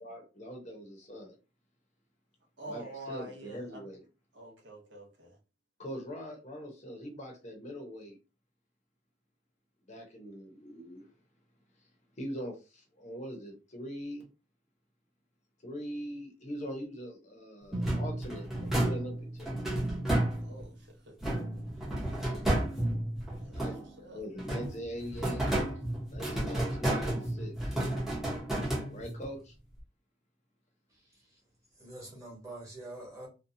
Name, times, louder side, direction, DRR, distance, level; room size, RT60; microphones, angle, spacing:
voice 1, 0.0-1.3 2.7-4.0 5.8-8.2 9.9-11.1 12.2-14.3 15.6-19.6 23.5-23.9 24.1-25.5 26.1-27.8 28.9-29.5, equal, 40° left, 0.7 m, -42 dB
voice 2, 2.6-3.9 4.3-5.4 20.4-21.2 23.4-24.2, right 1 dB, 65° right, 0.8 m, -46 dB
sound 1, 17.7-20.7 21.2-24.0 24.4-29.3, right 1 dB, ahead, 0.7 m, -32 dB
voice 3, 30.9-31.4 31.8-33.3, right 2 dB, 15° right, 1.2 m, -46 dB
2.7 x 2.2 x 2.6 m
head